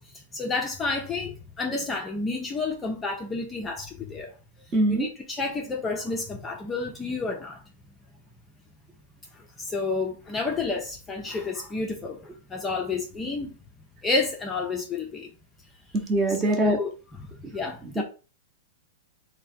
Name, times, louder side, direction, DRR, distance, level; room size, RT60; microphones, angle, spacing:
voice 1, 0.0-4.3 4.9-7.6 9.6-13.6 14.0-15.3 16.3-18.0, left 3 dB, 15° left, 0.5 m, -30 dB
voice 2, 4.7-5.1 15.9-16.8 18.0-18.1, right 2 dB, 20° right, 0.7 m, -23 dB
3.4 x 2.1 x 4.2 m
hypercardioid pair, 155°, 0 cm